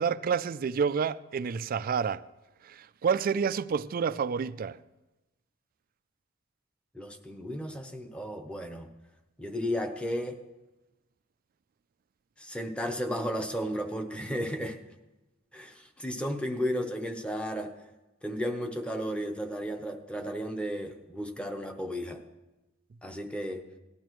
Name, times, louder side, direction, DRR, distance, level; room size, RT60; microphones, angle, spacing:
voice 1, 0.0-2.2 2.7-4.8, right 6 dB, 45° right, 0.3 m, -29 dB
voice 2, 6.9-8.9 9.4-10.4 12.4-14.8 15.5-17.7 18.2-22.2 23.0-23.7, equal, 5° left, 0.9 m, -34 dB
17.5 x 12.0 x 3.1 m
head